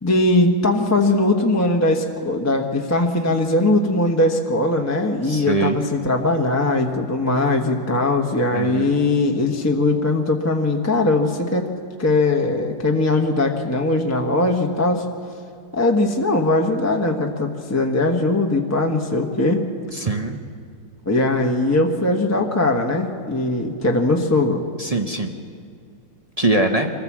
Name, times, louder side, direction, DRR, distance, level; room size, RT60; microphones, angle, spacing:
voice 1, 0.0-11.7 12.0-15.0 15.7-19.6 21.1-24.6, left 2 dB, 10° left, 2 dB, 0.8 m, -20 dB
voice 2, 5.2-5.8 8.5-8.9 19.9-20.4 24.8-25.3 26.4-26.9, right 2 dB, 30° right, 4 dB, 0.7 m, -22 dB
24.5 x 15.0 x 7.4 m, 2.2 s
omnidirectional pair, 2.0 m